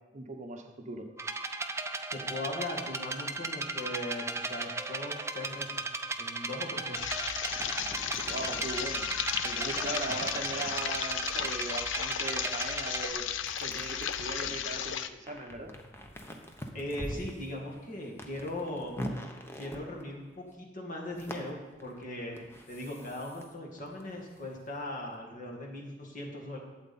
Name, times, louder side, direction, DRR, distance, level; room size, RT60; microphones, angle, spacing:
voice 1, 0.1-1.1 8.2-9.0 9.4-13.2 13.6-15.7, right 2 dB, 40° right, 3 dB, 1.1 m, -39 dB
sound 1, 1.2-13.1, right 3 dB, 15° right, 0.5 m, -36 dB
voice 2, 2.1-5.8 6.2-7.1 16.7-19.1 19.6-21.6 21.8-26.6, left 1 dB, 45° left, -1 dB, 2.1 m, -39 dB
sound 2, 7.0-15.1, left 9 dB, 85° left, 0.5 m, -34 dB
sound 3, 7.5-12.4 13.4-20.5 21.1-23.5 23.8-25.1, equal, 15° left, 0.9 m, -44 dB
12.0 x 8.0 x 4.3 m, 1.1 s
head